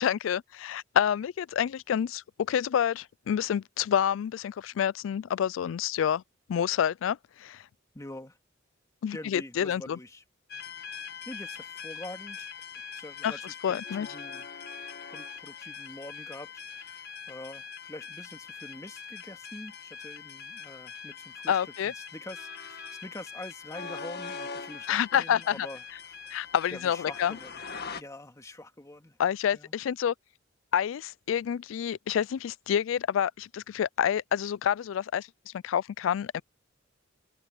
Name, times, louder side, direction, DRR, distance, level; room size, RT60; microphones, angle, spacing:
voice 1, 0.0-6.2 6.5-7.6 9.0-10.0 13.2-13.3 13.6-14.1 21.5-21.9 24.9-25.7 26.3-27.4 29.2-30.1 30.7-36.4, left 9 dB, 75° left, 0.3 m, -28 dB
voice 2, 7.9-8.4 9.1-10.2 11.3-12.5 12.9-14.4 15.1-26.2 26.7-27.6 28.0-29.2 29.5-29.7, left 1 dB, 15° left, 2.1 m, -45 dB
sound 1, 10.5-28.0, left 6 dB, 55° left, 1.9 m, -42 dB
open air
head